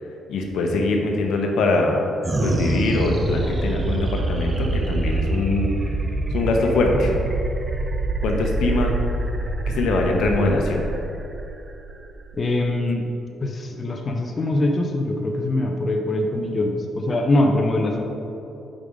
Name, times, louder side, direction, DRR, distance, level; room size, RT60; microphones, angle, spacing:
voice 1, 0.3-2.0 2.4-5.7 6.3-7.2 8.2-8.9 9.7-10.8, left 2 dB, 75° left, 1 dB, 0.9 m, -22 dB
sound 1, 2.2-12.9, right 2 dB, 30° right, 0.4 m, -25 dB
voice 2, 12.4-13.1 13.4-18.0, left 1 dB, 35° left, 2 dB, 0.6 m, -23 dB
5.5 x 5.0 x 5.0 m, 2.9 s
cardioid pair, 90°, 0 cm